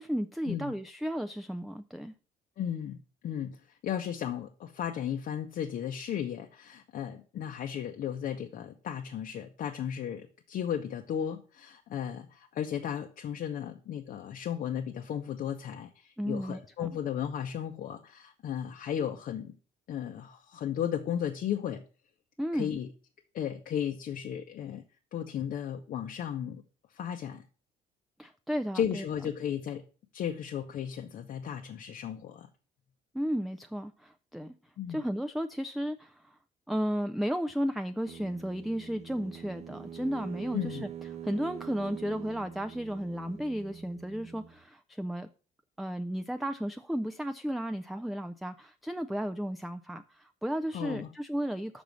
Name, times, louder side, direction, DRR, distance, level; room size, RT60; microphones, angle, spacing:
voice 1, 0.0-2.1 16.2-16.9 22.4-22.8 28.2-29.0 33.1-34.5 34.9-36.4 36.7-40.9 41.2-45.3 45.8-51.8, equal, ahead, 0.4 m, -34 dB
voice 2, 2.6-3.0 3.2-3.6 3.8-19.5 19.9-21.8 22.5-22.9 23.3-24.8 25.1-26.6 26.9-27.4 28.7-29.8 30.1-32.5 34.8-35.0 40.5-40.8 50.7-51.1, left 9 dB, 55° left, 0.8 m, -35 dB
sound 1, 38.1-44.6, right 8 dB, 40° right, 0.8 m, -44 dB
6.2 x 5.3 x 6.1 m
cardioid pair, 110°, 17 cm